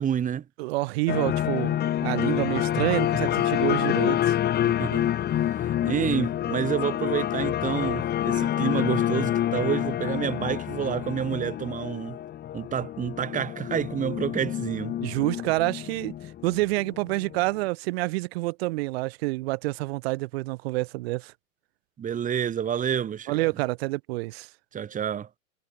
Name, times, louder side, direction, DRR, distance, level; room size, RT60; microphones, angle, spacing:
voice 1, 0.0-0.4 4.6-5.1 5.6-12.2 12.5-14.9 22.0-23.5 24.7-25.3, right 8 dB, 20° right, 1.6 m, -29 dB
voice 2, 0.6-4.4 15.0-16.1 16.4-21.3 23.3-24.5, right 22 dB, 50° right, 1.1 m, -28 dB
sound 1, 1.1-17.4, left 11 dB, 25° left, 1.4 m, -27 dB
hypercardioid pair, 105°, 41 cm